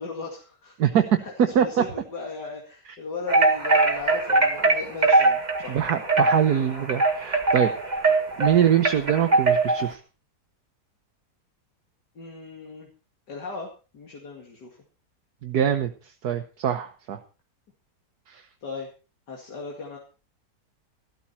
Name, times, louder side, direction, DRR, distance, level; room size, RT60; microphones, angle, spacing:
voice 1, 0.0-0.8 1.2-5.8 12.1-12.9 13.3-14.8 18.6-18.9 19.3-20.0, left 4 dB, 80° left, -1 dB, 2.9 m, -37 dB
voice 2, 0.8-1.2 1.5-1.8 5.7-7.7 8.4-10.0 15.4-15.9 16.2-17.2 18.3-18.4, right 9 dB, 70° right, 6 dB, 1.6 m, -23 dB
sound 1, 3.3-9.9, right 3 dB, 25° right, 2.0 m, -22 dB
14.5 x 13.0 x 4.3 m, 0.34 s
omnidirectional pair, 1.8 m